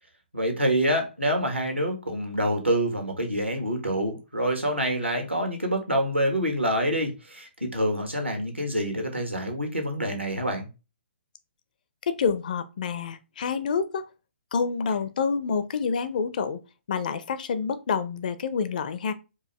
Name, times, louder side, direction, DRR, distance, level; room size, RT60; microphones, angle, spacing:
voice 1, 0.3-10.7, equal, 85° right, 1.4 m, -26 dB
voice 2, 12.1-14.0 14.5-16.6 16.9-19.1, left 5 dB, 45° left, 0.5 m, -27 dB
4.5 x 2.6 x 3.1 m
figure-of-eight pair, 130°, 6 cm